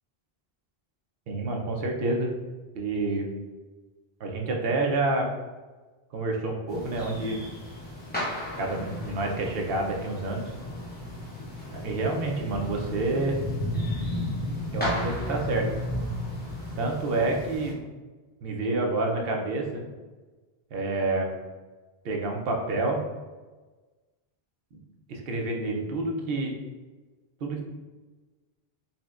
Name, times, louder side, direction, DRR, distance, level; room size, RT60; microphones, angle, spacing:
voice 1, 1.3-2.3 2.7-3.3 4.2-5.3 6.1-7.4 8.6-10.5 11.7-13.4 14.7-15.7 16.8-17.8 18.4-19.8 20.7-21.3 22.0-23.0 25.1-26.5 27.4-27.6, right 2 dB, 70° right, 1 dB, 0.8 m, -28 dB
sound 1, 6.7-17.7, left 1 dB, 10° left, 0.6 m, -34 dB
4.0 x 2.1 x 2.4 m, 1.3 s
omnidirectional pair, 1.0 m